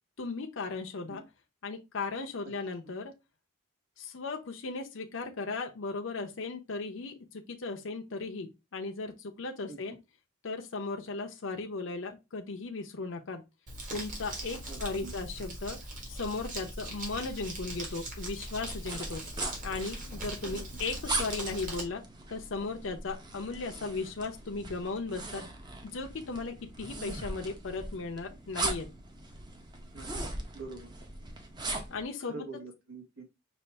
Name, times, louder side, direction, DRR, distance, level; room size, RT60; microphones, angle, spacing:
voice 1, 0.2-1.2 1.6-3.1 4.0-10.0 10.4-13.4 13.9-15.8 16.1-19.2 19.6-22.0 22.3-25.4 25.8-28.9 31.9-32.4, left 3 dB, 65° left, 0.6 m, -36 dB
Crumpling crinkling, 13.7-21.8, right 1 dB, 40° right, 1.4 m, -40 dB
voice 2, 14.7-15.1 20.4-20.6 29.9-30.9 32.3-33.2, right 3 dB, 75° right, 1.3 m, -45 dB
sound 1, 18.7-32.0, right 2 dB, 20° right, 0.7 m, -40 dB
5.2 x 2.5 x 3.3 m
head